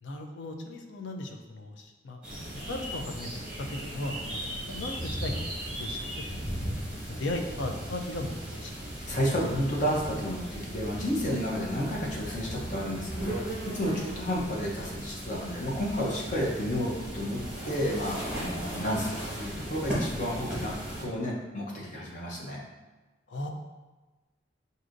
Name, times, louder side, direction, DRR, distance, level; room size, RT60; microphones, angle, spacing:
voice 1, 0.0-3.3 3.6-6.8 7.1-8.7 23.3-23.5, left 1 dB, 80° left, 3 dB, 0.5 m, -37 dB
sound 1, 2.2-21.0, equal, 5° right, 1.3 m, -37 dB
voice 2, 9.1-22.6, equal, 40° left, -4 dB, 0.8 m, -31 dB
6.1 x 2.7 x 2.5 m, 1.2 s
head